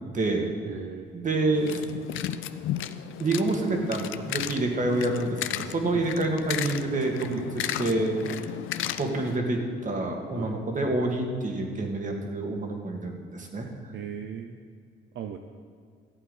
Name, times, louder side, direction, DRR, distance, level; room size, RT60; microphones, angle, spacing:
voice 1, 0.1-0.5 1.1-1.8 3.2-8.2 9.0-13.9, right 2 dB, 40° right, 2 dB, 2.2 m, -28 dB
voice 2, 0.6-1.1 5.9-6.1 7.3-7.5 8.3-8.4 10.3-10.6 13.9-14.6 15.1-15.4, right 9 dB, 70° right, 6 dB, 0.7 m, -37 dB
sound 1, 1.5-9.4, left 11 dB, 80° left, 0.5 m, -34 dB
14.5 x 8.5 x 5.5 m, 2.2 s
cardioid pair, 90°, 20 cm